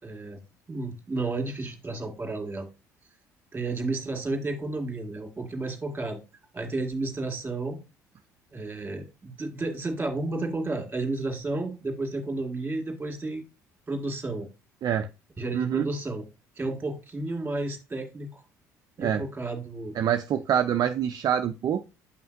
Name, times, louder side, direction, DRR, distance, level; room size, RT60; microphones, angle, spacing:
voice 1, 0.0-0.4 0.7-2.7 3.5-6.2 6.5-7.8 8.5-13.4 13.9-14.5 15.4-16.2 16.6-18.4 19.0-19.9, right 2 dB, 20° right, 2.2 m, -32 dB
voice 2, 15.5-15.9 19.0-19.2 20.0-21.8, right 9 dB, 45° right, 0.5 m, -25 dB
8.1 x 5.5 x 2.6 m
hypercardioid pair, 55°, 9 cm